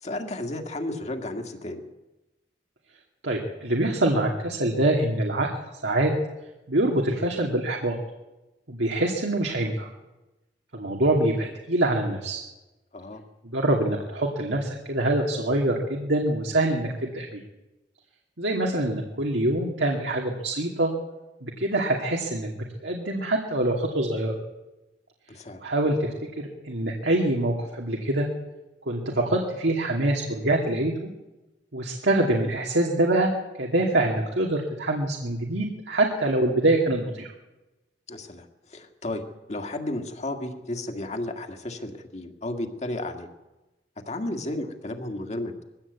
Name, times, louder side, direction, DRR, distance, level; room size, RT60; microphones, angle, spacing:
voice 1, 0.0-1.8 12.9-13.2 25.3-25.6 38.1-43.3 44.1-45.6, left 1 dB, 40° left, 5 dB, 2.1 m, -33 dB
voice 2, 3.2-5.5 5.8-6.1 6.7-8.0 8.7-9.9 10.7-12.4 13.5-17.4 18.4-20.9 21.4-24.4 25.6-26.1 26.4-28.3 28.9-31.1 31.7-33.3 33.6-37.3, right 1 dB, 90° right, 0 dB, 2.5 m, -25 dB
21.5 x 16.0 x 8.2 m, 1.0 s
head